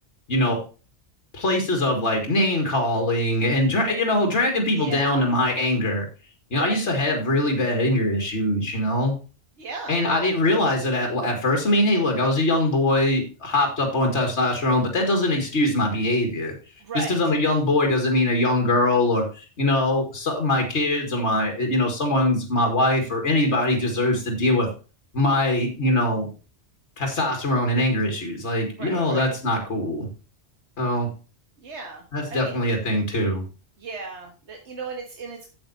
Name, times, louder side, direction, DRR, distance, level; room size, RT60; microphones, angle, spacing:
voice 1, 0.3-0.6 1.3-6.1 6.5-9.1 9.9-16.5 16.9-24.7 25.1-26.3 27.0-30.1 30.8-31.1 32.1-33.4, left 1 dB, 75° left, 3 dB, 2.2 m, -22 dB
voice 2, 4.7-5.2 6.6-6.8 9.6-10.3 16.8-17.2 28.8-29.3 31.6-32.5 33.8-35.5, right 3 dB, 75° right, 1 dB, 1.8 m, -35 dB
8.8 x 7.9 x 4.2 m, 0.34 s
omnidirectional pair, 1.2 m